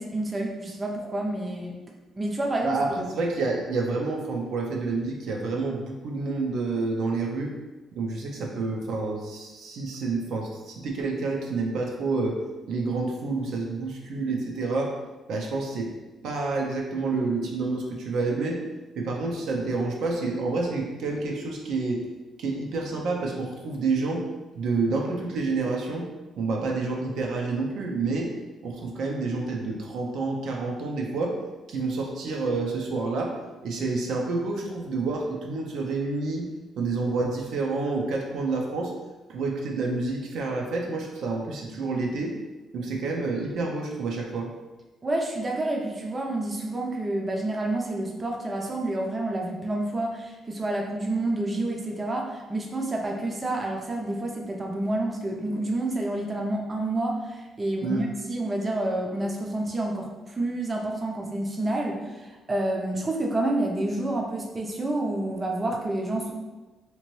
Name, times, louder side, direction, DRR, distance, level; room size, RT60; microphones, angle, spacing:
voice 1, 0.0-1.7 2.2-2.8 45.0-66.3, right 1 dB, 30° right, 0 dB, 0.5 m, -29 dB
voice 2, 2.6-7.5 7.9-12.4 12.7-15.0 15.3-15.9 16.2-18.6 19.0-22.1 22.4-24.2 24.5-26.1 26.4-28.3 28.6-31.4 31.7-33.4 33.6-36.5 36.8-38.9 39.3-42.4 42.7-44.5 57.8-58.0, right 3 dB, 75° right, 0 dB, 0.5 m, -28 dB
2.9 x 2.5 x 3.0 m, 1.2 s
cardioid pair, 90°, 0 cm